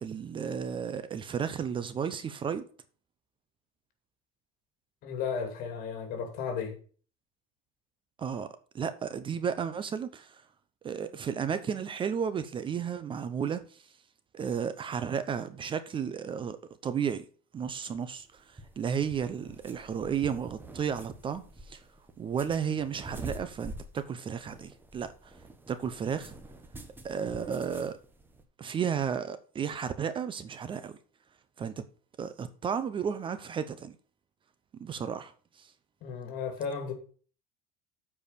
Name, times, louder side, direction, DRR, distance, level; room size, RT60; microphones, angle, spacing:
voice 1, 0.0-2.7 8.2-8.5 8.7-10.4 10.8-13.8 14.3-17.2 17.5-21.8 22.2-25.3 25.7-26.3 27.0-28.0 28.6-31.0 31.6-31.8 32.2-34.0 34.8-35.7, right 7 dB, 30° right, 0.7 m, -33 dB
voice 2, 5.0-6.8 36.0-36.9, left 6 dB, 55° left, 2.7 m, -34 dB
sound 1, 18.2-28.4, right 2 dB, 10° right, 1.1 m, -47 dB
7.8 x 4.8 x 6.7 m
supercardioid pair, 125°, 18 cm